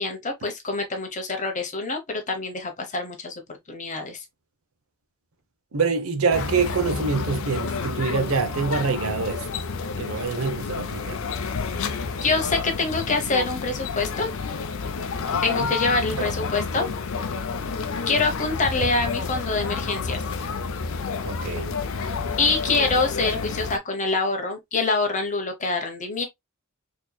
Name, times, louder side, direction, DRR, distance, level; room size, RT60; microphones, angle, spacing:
voice 1, 0.0-4.2 10.2-10.3 12.2-14.3 15.4-16.9 18.1-20.2 22.4-26.2, left 3 dB, 35° left, 0.9 m, -25 dB
voice 2, 5.7-9.5 10.0-11.2 15.3-15.7 16.2-16.3 21.2-21.7, right 5 dB, 85° right, 0.7 m, -26 dB
sound 1, 6.3-23.8, left 5 dB, 75° left, 0.6 m, -30 dB
4.4 x 2.9 x 2.2 m
head